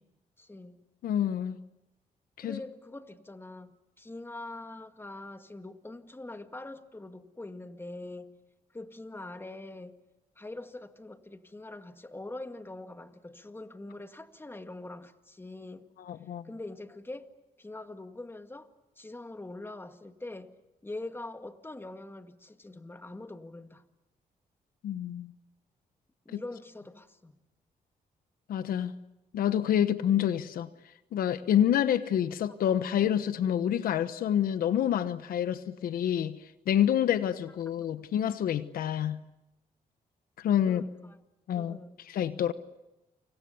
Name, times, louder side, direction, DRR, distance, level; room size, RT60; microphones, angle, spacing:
voice 1, 0.4-0.8 2.4-8.4 8.7-10.0 10.4-15.9 16.4-17.3 17.6-18.7 19.0-20.6 20.8-23.9 26.3-27.4 37.8-37.9 40.7-41.2 41.6-42.0, left 2 dB, 15° left, 2.0 m, -43 dB
voice 2, 1.0-1.6 2.4-2.6 16.1-16.4 24.8-25.3 26.3-26.4 28.5-28.9 29.3-30.7 31.1-36.4 36.7-39.2 40.4-40.8 41.5-41.8 42.1-42.5, left 10 dB, 85° left, 1.1 m, -27 dB
29.0 x 26.5 x 7.0 m
cardioid pair, 80°, 15 cm